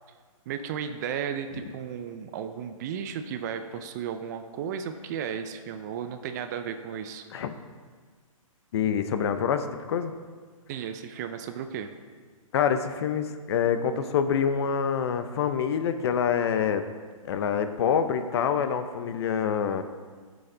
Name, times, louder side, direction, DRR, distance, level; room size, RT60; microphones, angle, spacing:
voice 1, 0.5-7.2 10.7-11.9, right 8 dB, 30° right, 9 dB, 0.5 m, -34 dB
voice 2, 8.7-10.1 12.5-16.8 17.2-19.8, left 7 dB, 50° left, 9 dB, 0.8 m, -26 dB
12.0 x 7.1 x 3.9 m, 1.5 s
hypercardioid pair, 150°, 18 cm